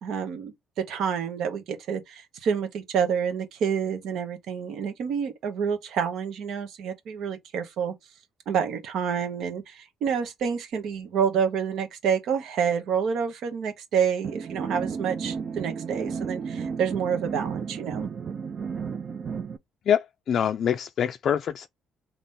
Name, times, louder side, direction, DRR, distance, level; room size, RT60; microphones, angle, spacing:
voice 1, 0.0-7.9 8.5-18.1, right 7 dB, 75° right, 1.0 m, -28 dB
sound 1, 14.2-19.6, right 6 dB, 45° right, 0.5 m, -33 dB
voice 2, 19.9-21.7, left 9 dB, 55° left, 0.3 m, -25 dB
4.0 x 3.0 x 3.6 m
cardioid pair, 105°, 0 cm